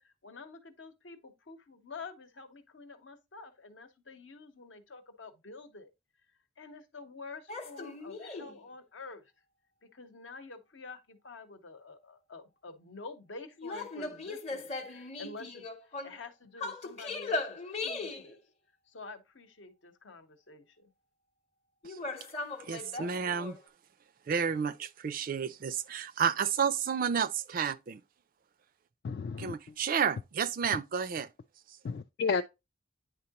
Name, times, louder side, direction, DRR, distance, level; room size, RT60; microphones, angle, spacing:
voice 1, 0.0-5.9 6.6-9.3 9.8-18.4 18.9-20.9, left 3 dB, 70° left, 0.9 m, -48 dB
sound 1, 7.5-8.6 13.6-16.2 16.6-18.4 21.8-23.6, left 3 dB, 35° left, 0.8 m, -38 dB
voice 2, 22.7-23.6 24.3-28.0 29.4-31.3, right 7 dB, 45° right, 0.4 m, -31 dB
voice 3, 29.0-29.6 31.8-32.4, left 5 dB, 50° left, 0.3 m, -31 dB
9.6 x 3.7 x 2.9 m
head